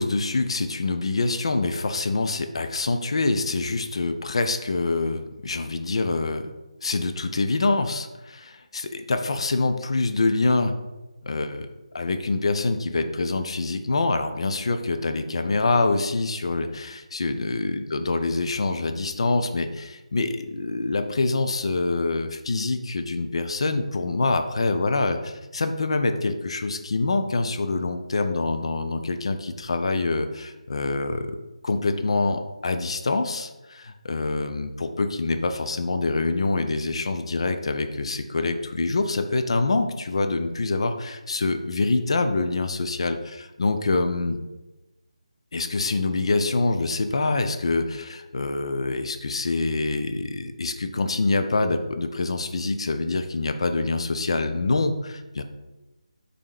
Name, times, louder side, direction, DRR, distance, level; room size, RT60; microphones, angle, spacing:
voice 1, 0.0-6.5 6.8-10.7 11.2-11.7 11.9-31.4 31.6-44.4 45.5-55.4, left 3 dB, 50° left, 7 dB, 0.5 m, -25 dB
5.3 x 4.2 x 4.9 m, 1.1 s
figure-of-eight pair, 155°, 4 cm